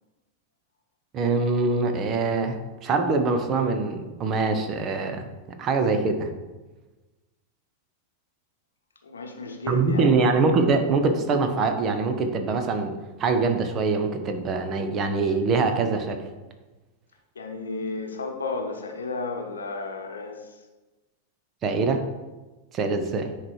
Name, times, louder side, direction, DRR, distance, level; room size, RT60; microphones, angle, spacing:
voice 1, 1.1-5.3 5.6-6.3 9.7-12.9 13.2-16.2 21.6-22.0 22.7-23.3, right 4 dB, 30° right, 7 dB, 0.9 m, -23 dB
voice 2, 9.0-10.1 17.3-20.6, left 3 dB, 70° left, 4 dB, 0.9 m, -33 dB
9.6 x 3.3 x 4.6 m, 1.2 s
figure-of-eight pair, 90°, 0 cm